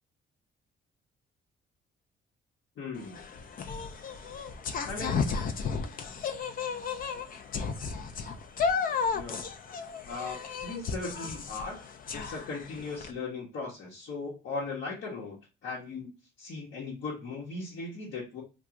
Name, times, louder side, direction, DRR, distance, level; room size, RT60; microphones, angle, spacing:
voice 1, 2.8-3.2 4.8-5.2 9.1-9.4 10.0-15.4 15.6-16.1 16.4-18.4, left 3 dB, 70° left, -5 dB, 1.0 m, -38 dB
sound 1, 3.0-13.1, left 5 dB, 45° left, 0.4 m, -34 dB
2.4 x 2.3 x 2.8 m, 0.30 s
cardioid pair, 90°, 20 cm